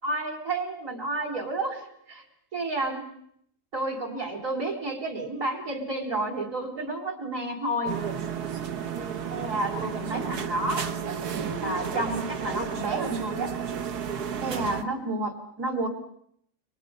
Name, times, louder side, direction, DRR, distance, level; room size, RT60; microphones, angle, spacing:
voice 1, 0.0-1.8 2.1-2.2 2.5-3.1 3.7-8.0 9.3-10.9 11.2-11.3 11.6-13.5 14.4-15.9, right 2 dB, 55° right, 0 dB, 4.2 m, -30 dB
sound 1, 7.9-14.8, right 7 dB, 75° right, 1.8 m, -32 dB
29.5 x 24.0 x 5.5 m, 0.69 s
omnidirectional pair, 1.7 m